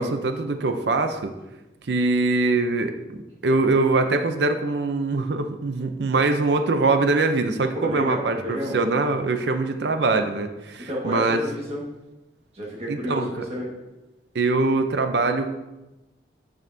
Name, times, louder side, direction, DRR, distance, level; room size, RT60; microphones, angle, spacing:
voice 1, 0.0-1.3 1.9-2.9 3.4-11.4 12.9-13.3 14.3-15.5, right 3 dB, 65° right, 7 dB, 0.6 m, -23 dB
voice 2, 7.7-8.8 10.9-11.8 12.5-13.7, equal, 35° right, -3 dB, 1.6 m, -30 dB
9.0 x 6.5 x 2.7 m, 1.0 s
head